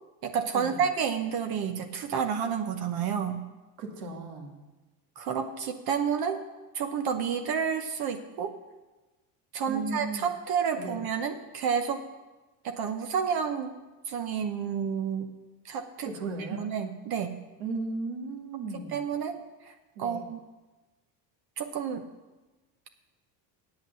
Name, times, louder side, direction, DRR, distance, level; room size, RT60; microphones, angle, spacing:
voice 1, 0.2-3.4 5.2-6.4 6.7-8.5 9.5-12.0 12.6-13.7 14.1-15.3 15.6-16.1 16.5-17.4 18.7-20.4 21.6-22.0, right 7 dB, 50° right, 6 dB, 1.0 m, -30 dB
voice 2, 3.8-4.6 9.6-10.2 10.7-11.0 16.0-16.7 17.6-19.0 20.0-20.2, right 3 dB, 75° right, 3 dB, 2.0 m, -36 dB
8.7 x 8.1 x 6.9 m, 1.1 s
supercardioid pair, 105°, 46 cm